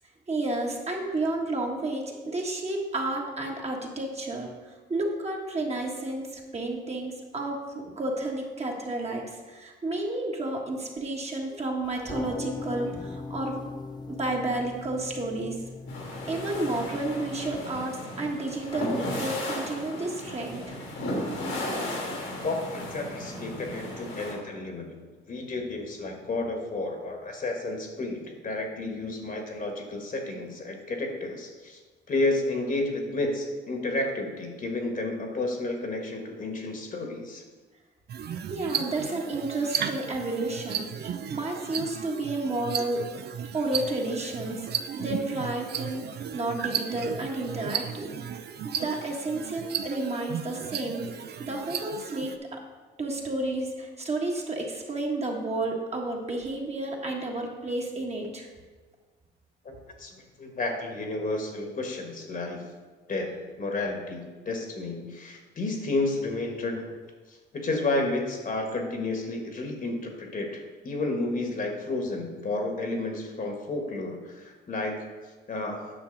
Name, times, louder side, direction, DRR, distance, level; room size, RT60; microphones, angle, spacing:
voice 1, 0.3-13.6 14.1-15.6 16.3-20.8 38.5-43.0 43.5-44.6 44.9-48.1 48.6-52.6 53.0-58.5, right 2 dB, 35° right, 0 dB, 1.5 m, -31 dB
sound 1, 11.8-17.8, left 3 dB, 20° left, 0.6 m, -40 dB
sound 2, 15.9-24.3, left 1 dB, 85° left, 2.7 m, -35 dB
voice 2, 22.4-31.8 32.1-37.4 59.6-62.6 63.1-66.9 67.3-75.1 75.5-75.9, left 2 dB, 45° left, 3 dB, 1.5 m, -31 dB
sound 3, 38.1-52.4, right 8 dB, 55° right, 0.5 m, -35 dB
9.0 x 5.9 x 4.0 m, 1.4 s
cardioid pair, 90°, 20 cm